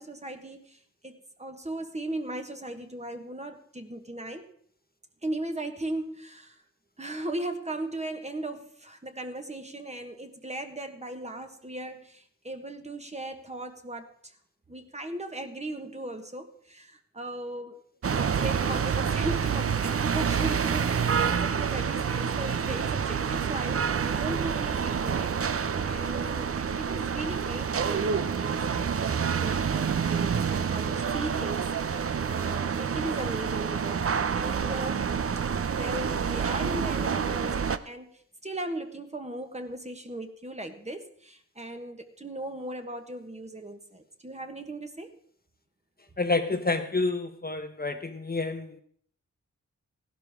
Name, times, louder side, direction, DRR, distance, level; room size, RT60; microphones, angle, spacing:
voice 1, 0.0-4.5 5.2-6.6 7.0-14.3 14.7-35.1 35.7-45.1, right 1 dB, 20° right, 6 dB, 1.4 m, -37 dB
sound 1, 18.0-37.8, right 6 dB, 50° right, 0.6 m, -28 dB
voice 2, 46.2-48.8, left 3 dB, 30° left, 7 dB, 1.0 m, -29 dB
16.0 x 11.5 x 3.6 m, 0.62 s
wide cardioid pair, 85°, 30 cm